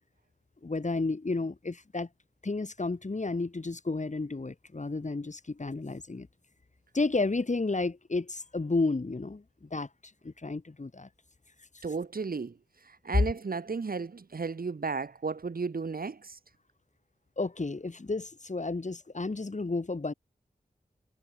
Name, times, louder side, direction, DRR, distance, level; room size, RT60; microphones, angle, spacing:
voice 1, 0.6-2.1 2.4-6.3 6.9-9.9 10.2-11.1 17.4-20.1, left 3 dB, 50° left, 5.2 m, -32 dB
voice 2, 11.8-16.4, right 4 dB, 65° right, 2.1 m, -34 dB
cardioid pair, 40°, 16 cm